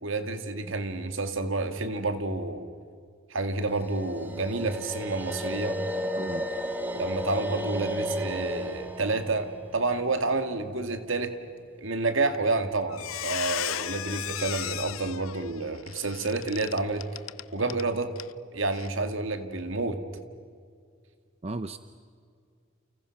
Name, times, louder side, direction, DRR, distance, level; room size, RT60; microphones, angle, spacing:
voice 1, 0.0-2.7 3.3-5.8 6.9-11.3 11.8-17.1 17.5-18.1 18.5-20.0, right 3 dB, 70° right, 8 dB, 2.1 m, -29 dB
sound 1, 3.7-10.8, equal, 10° right, 1.9 m, -34 dB
voice 2, 6.2-6.5 21.4-21.8, right 2 dB, 30° right, 11 dB, 0.7 m, -35 dB
Squeak, 12.3-12.6 12.9-17.9 18.2-18.3 18.7-18.9, left 12 dB, 85° left, 0.6 m, -35 dB
30.0 x 30.0 x 6.0 m, 2.1 s
head